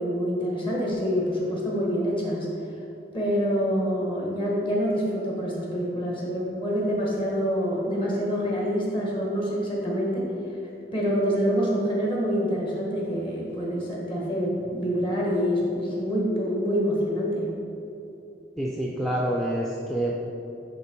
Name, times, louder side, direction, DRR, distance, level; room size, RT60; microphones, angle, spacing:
voice 1, 0.0-2.5 3.1-10.3 10.9-17.5, equal, 30° left, -4 dB, 1.4 m, -26 dB
voice 2, 18.6-20.1, right 1 dB, ahead, -4 dB, 0.5 m, -27 dB
10.0 x 3.4 x 4.5 m, 3.0 s
head